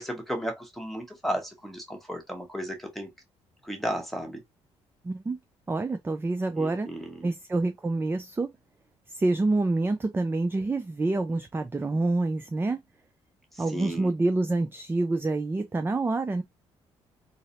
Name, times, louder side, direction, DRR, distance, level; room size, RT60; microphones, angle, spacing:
voice 1, 0.0-3.1 3.6-4.4 6.5-7.3 13.5-14.1, equal, ahead, 1.2 m, -34 dB
voice 2, 5.0-5.4 5.7-6.9 7.2-8.5 9.1-12.8 13.6-16.4, right 2 dB, 15° right, 0.4 m, -27 dB
3.9 x 2.0 x 2.5 m
figure-of-eight pair, 45°, 15 cm